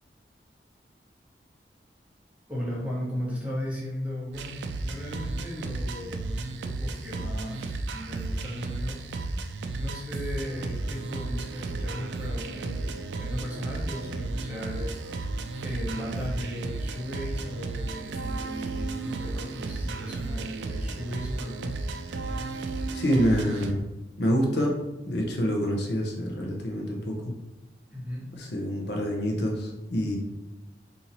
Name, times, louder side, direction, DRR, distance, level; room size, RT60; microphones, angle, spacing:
voice 1, 2.5-9.0 9.5-21.8 27.9-28.2, equal, 10° right, -6 dB, 0.9 m, -36 dB
sound 1, 4.3-23.7, right 2 dB, 80° right, 0.4 m, -33 dB
voice 2, 22.9-23.8 24.2-24.7 25.1-27.3 28.4-30.2, equal, 75° left, 0 dB, 0.7 m, -27 dB
2.9 x 2.7 x 3.9 m, 1.0 s
head